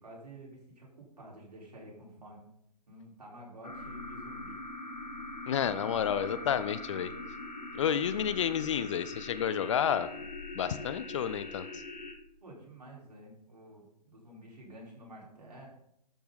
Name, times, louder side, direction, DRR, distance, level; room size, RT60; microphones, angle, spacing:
voice 1, 0.0-2.4 2.9-4.6 12.4-15.7, right 1 dB, 70° right, -3 dB, 4.5 m, -50 dB
sound 1, 3.6-12.1, left 2 dB, 85° left, 1.6 m, -42 dB
voice 2, 5.5-7.1 7.8-10.1 10.5-11.8, left 8 dB, 45° left, 14 dB, 0.6 m, -30 dB
12.0 x 7.1 x 4.0 m, 0.77 s
figure-of-eight pair, 125°, 21 cm